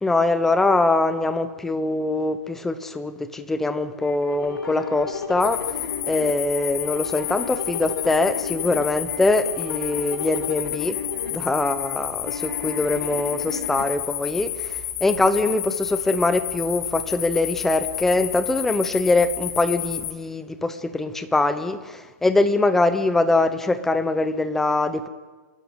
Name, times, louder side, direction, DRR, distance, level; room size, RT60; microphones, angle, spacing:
voice 1, 0.0-5.6 6.0-11.0 11.3-25.1, left 2 dB, 5° left, 11 dB, 0.7 m, -23 dB
sound 1, 4.0-13.9, left 6 dB, 85° left, 2.4 m, -34 dB
sound 2, 5.4-20.1, left 12 dB, 20° left, 1.2 m, -31 dB
28.5 x 11.5 x 8.6 m, 1.3 s
hypercardioid pair, 170°, 11 cm